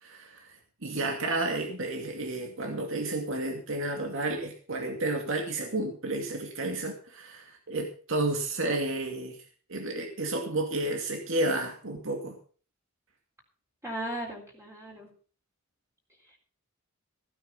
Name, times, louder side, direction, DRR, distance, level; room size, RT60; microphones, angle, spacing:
voice 1, 0.0-9.4 9.7-12.4, right 2 dB, 65° right, 3 dB, 2.3 m, -31 dB
voice 2, 13.8-15.1 16.3-16.4, right 1 dB, 15° right, -2 dB, 3.8 m, -37 dB
15.5 x 9.4 x 5.6 m, 0.41 s
head